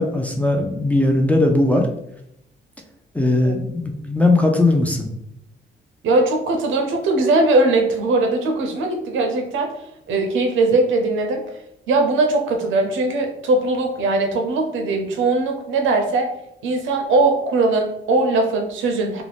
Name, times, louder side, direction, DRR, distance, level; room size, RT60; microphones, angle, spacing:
voice 1, 0.0-1.9 3.1-5.1, left 2 dB, 5° left, 2 dB, 0.4 m, -18 dB
voice 2, 6.0-9.7 10.1-11.4 11.9-16.3 16.6-19.2, right 2 dB, 80° right, 4 dB, 0.6 m, -20 dB
2.5 x 2.0 x 3.2 m, 0.79 s
cardioid pair, 90°, 20 cm